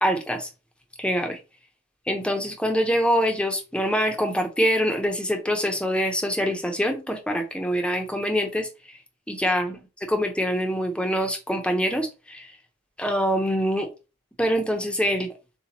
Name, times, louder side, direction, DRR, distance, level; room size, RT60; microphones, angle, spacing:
voice 1, 0.0-0.5 1.0-1.4 2.1-8.7 9.3-9.8 10.1-12.5 13.0-13.9 14.4-15.3, equal, 5° left, 0.8 m, -24 dB
7.0 x 2.4 x 2.9 m
head